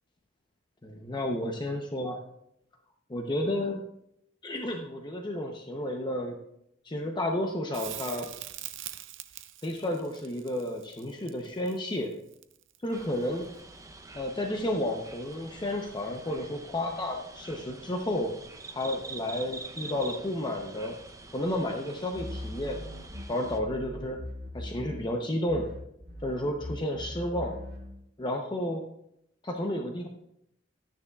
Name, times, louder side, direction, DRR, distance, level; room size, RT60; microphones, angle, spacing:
voice 1, 0.8-2.2 3.1-3.8 4.4-6.4 6.8-8.3 9.6-12.1 12.8-13.4 14.1-18.3 18.7-21.0 21.3-22.8 23.3-24.2 24.5-25.7 26.2-27.5 28.2-28.8 29.4-30.1, left 1 dB, 25° left, 2 dB, 0.7 m, -31 dB
Crackle, 7.7-12.9 15.6-15.7, right 13 dB, 75° right, 0.5 m, -43 dB
sound 1, 12.9-23.6, right 3 dB, 15° right, 0.6 m, -46 dB
sound 2, 22.1-25.2 25.5-28.0, left 1 dB, 50° right, 2.2 m, -40 dB
13.0 x 9.7 x 2.4 m, 0.78 s
head